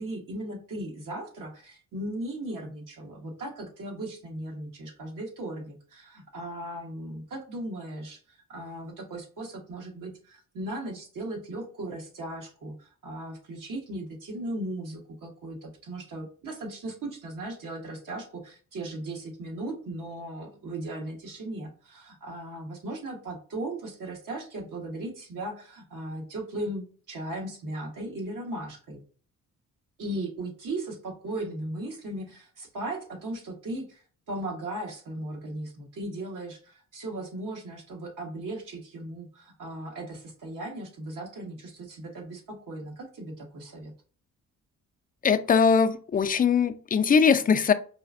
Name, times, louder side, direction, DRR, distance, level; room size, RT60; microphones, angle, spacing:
voice 1, 0.0-29.0 30.0-43.9, right 1 dB, 65° right, 1.3 m, -37 dB
voice 2, 45.2-47.7, left 6 dB, 25° left, 0.4 m, -21 dB
4.9 x 2.5 x 2.5 m
supercardioid pair, 60°, 35 cm